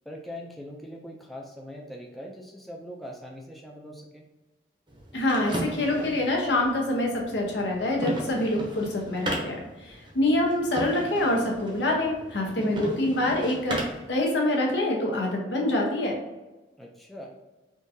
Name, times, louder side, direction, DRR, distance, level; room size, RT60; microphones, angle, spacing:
voice 1, 0.1-4.2 16.8-17.3, equal, ahead, -1 dB, 0.3 m, -41 dB
sound 1, 4.9-14.1, right 1 dB, 25° right, 0.7 m, -37 dB
voice 2, 5.1-16.2, left 1 dB, 75° left, -1 dB, 0.8 m, -26 dB
3.6 x 2.6 x 2.6 m, 1.1 s
head